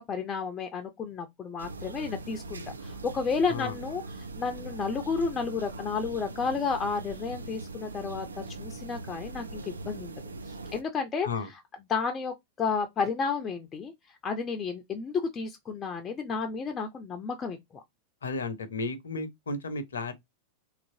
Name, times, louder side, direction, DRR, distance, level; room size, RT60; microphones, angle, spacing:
voice 1, 0.0-8.3 8.6-10.2 10.5-11.6 11.9-13.9 14.2-17.8, left 5 dB, 25° left, 0.4 m, -32 dB
sound 1, 1.6-10.8, right 3 dB, 75° right, 0.4 m, -41 dB
voice 2, 18.2-20.1, left 3 dB, 70° left, 0.6 m, -33 dB
2.9 x 2.5 x 2.7 m
figure-of-eight pair, 90°, 0 cm